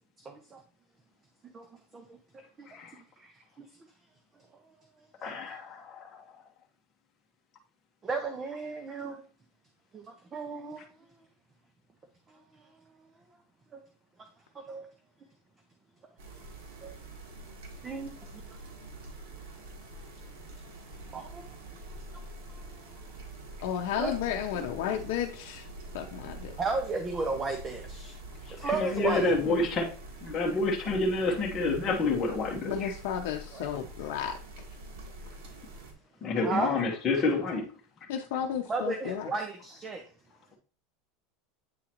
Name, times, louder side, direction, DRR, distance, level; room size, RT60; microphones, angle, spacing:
voice 1, 0.2-0.6 1.5-1.7 1.9-3.7 5.2-5.3 8.0-9.2 9.9-10.9 12.3-12.6 13.7-13.8 14.5-14.9 16.8-16.9 17.8-18.4 21.1-21.4 22.5-22.7 24.0-24.1 26.6-28.1 28.5-29.3 33.5-33.7 36.4-36.7 38.7-40.0, right 4 dB, 20° right, 0.6 m, -35 dB
voice 2, 5.2-5.6 28.6-29.9 30.2-32.9 36.2-37.6, left 3 dB, 20° left, 1.1 m, -28 dB
sound 1, 16.2-35.9, right 2 dB, 70° right, 1.8 m, -45 dB
voice 3, 23.6-25.7 25.9-26.6 29.5-29.6 32.6-34.3 38.1-39.3, left 9 dB, 70° left, 0.7 m, -33 dB
8.5 x 3.8 x 3.0 m
supercardioid pair, 160°, 0 cm